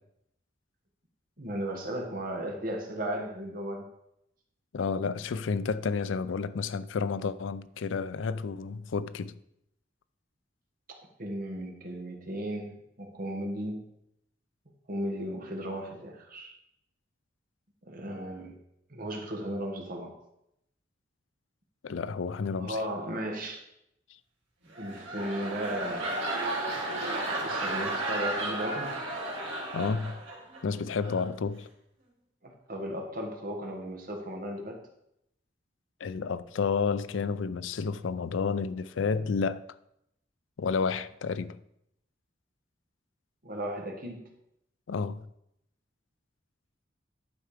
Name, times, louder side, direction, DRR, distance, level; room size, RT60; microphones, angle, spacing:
voice 1, 1.4-3.9 11.2-13.9 14.9-16.5 17.9-18.5 18.9-20.1 22.6-23.6 24.8-26.1 27.4-29.0 32.4-34.8 43.4-44.2, right 1 dB, 50° right, 1.6 m, -35 dB
voice 2, 4.7-9.4 21.8-22.8 29.7-30.2 30.6-31.7 36.0-39.6 40.6-41.6 44.9-45.3, left 5 dB, 90° left, 0.4 m, -31 dB
sound 1, 24.6-30.6 31.0-31.3, right 2 dB, 80° right, 3.2 m, -33 dB
11.5 x 4.6 x 5.0 m
head